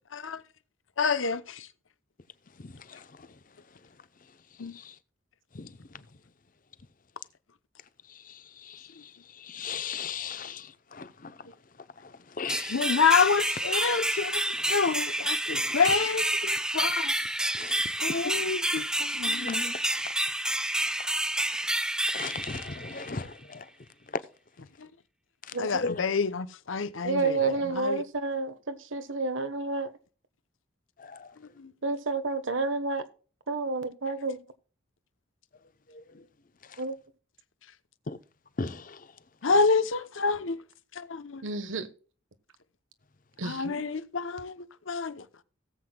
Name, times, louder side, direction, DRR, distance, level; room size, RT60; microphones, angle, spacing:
voice 1, 1.0-1.6 4.6-4.7 12.7-17.1 18.0-19.5 25.6-28.0 31.6-31.7 39.4-40.6 41.0-41.4 43.4-44.5 44.9-45.2, left 5 dB, 85° left, 0.8 m, -27 dB
voice 2, 2.6-3.0 5.5-5.7 8.6-8.9 9.4-11.3 12.4-12.8 15.6-15.8 17.6-17.8 19.3-19.8 22.1-23.6 25.8-26.0 31.0-31.3 38.1-38.2 38.6-39.0, left 4 dB, 45° left, 0.7 m, -36 dB
sound 1, 12.5-23.2, right 1 dB, 5° right, 0.5 m, -29 dB
voice 3, 27.0-29.9 31.8-33.0 33.5-34.4 36.8-36.9 41.4-41.9 43.4-43.7, right 3 dB, 85° right, 1.2 m, -30 dB
17.5 x 7.9 x 2.3 m
head